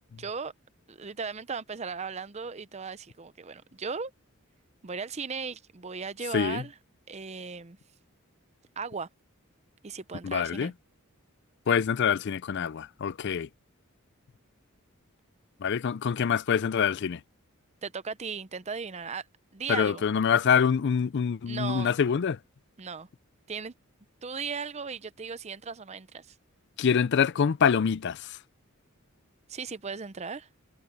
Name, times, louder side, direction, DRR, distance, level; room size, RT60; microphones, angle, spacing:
voice 1, 0.2-0.5 0.9-4.1 4.8-6.7 7.1-7.8 8.8-9.1 9.8-10.7 17.8-19.3 19.5-20.0 21.5-21.9 22.8-23.1 23.5-23.7 24.2-26.3 29.5-30.5, right 5 dB, 30° right, 0.6 m, -37 dB
voice 2, 10.2-10.7 11.7-13.5 15.6-17.2 19.7-22.4 26.8-28.4, left 7 dB, 55° left, 0.4 m, -25 dB
head